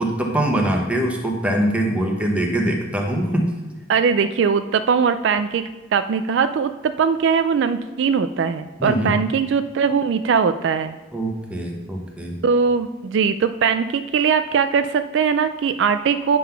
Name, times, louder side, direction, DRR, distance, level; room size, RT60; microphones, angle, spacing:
voice 1, 0.0-3.5 8.8-9.2 11.1-12.4, right 1 dB, 5° right, 1 dB, 0.9 m, -22 dB
voice 2, 3.9-11.0 12.4-16.4, right 6 dB, 60° right, 11 dB, 0.3 m, -20 dB
9.1 x 3.9 x 5.6 m, 1.2 s
head